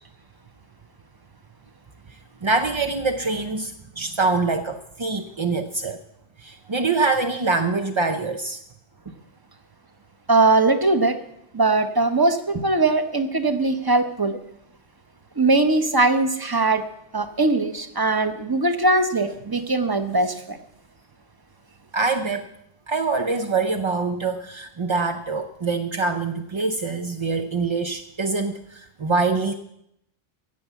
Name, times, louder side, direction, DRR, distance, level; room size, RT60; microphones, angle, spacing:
voice 1, 2.1-6.0 6.4-8.6 21.9-22.5 22.9-29.5, right 3 dB, 35° right, 6 dB, 0.4 m, -24 dB
voice 2, 10.3-11.2 11.5-14.4 15.4-16.8 17.1-20.6, right 2 dB, 20° right, 9 dB, 0.9 m, -20 dB
15.0 x 7.9 x 8.2 m, 0.79 s
omnidirectional pair, 1.3 m